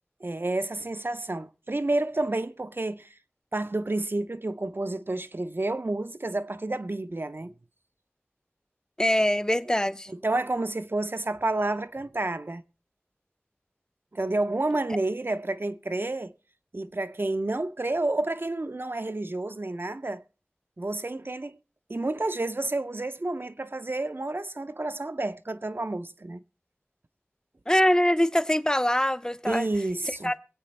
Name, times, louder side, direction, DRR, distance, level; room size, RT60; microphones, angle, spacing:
voice 1, 0.2-3.1 3.5-7.5 10.1-12.6 14.1-16.3 16.7-20.2 20.8-21.6 21.9-26.4 29.5-30.3, right 2 dB, 55° right, 0.6 m, -30 dB
voice 2, 9.0-10.1 27.7-29.7 30.2-30.4, left 1 dB, 15° left, 0.6 m, -23 dB
24.0 x 8.4 x 3.2 m
wide cardioid pair, 45°, 5 cm